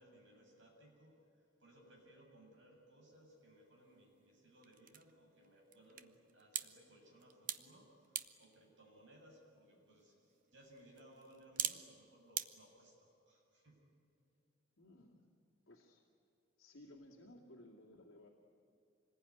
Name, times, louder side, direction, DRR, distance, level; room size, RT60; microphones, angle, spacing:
voice 1, 0.0-13.9, right 1 dB, 60° right, 0 dB, 7.1 m, -63 dB
sound 1, 3.1-12.5, right 10 dB, 40° right, 0.9 m, -48 dB
voice 2, 14.8-15.3 15.7-16.0 16.6-18.3, left 1 dB, 70° left, -1 dB, 2.4 m, -59 dB
26.5 x 20.5 x 9.8 m, 2.8 s
head